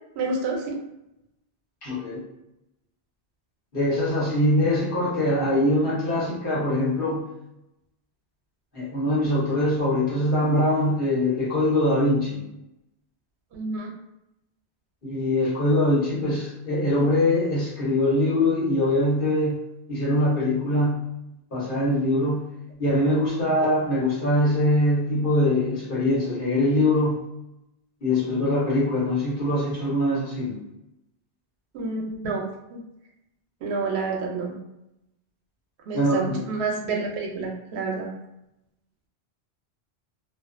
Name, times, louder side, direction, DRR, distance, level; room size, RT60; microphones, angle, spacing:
voice 1, 0.2-0.8 13.5-13.9 31.7-32.8 33.6-34.6 35.9-38.1, right 3 dB, 85° right, 1 dB, 0.8 m, -29 dB
voice 2, 1.8-2.2 3.7-7.2 8.7-12.4 15.0-19.6 19.9-21.0 21.5-22.4 22.8-27.2 28.0-30.6 32.2-32.3 35.9-36.4, left 1 dB, 55° left, -7 dB, 1.2 m, -23 dB
2.4 x 2.3 x 2.4 m, 0.87 s
omnidirectional pair, 1.1 m